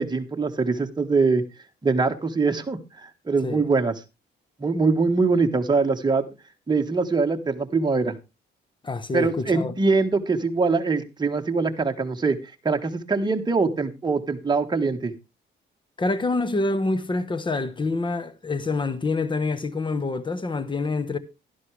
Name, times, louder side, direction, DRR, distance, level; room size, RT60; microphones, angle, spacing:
voice 1, 0.0-1.4 1.8-3.9 4.6-6.2 6.7-8.1 9.1-12.4 12.6-15.1, right 4 dB, 20° right, 1.4 m, -23 dB
voice 2, 8.8-9.7 16.0-21.2, left 3 dB, 25° left, 1.1 m, -26 dB
11.5 x 11.0 x 3.3 m
cardioid pair, 90°, 20 cm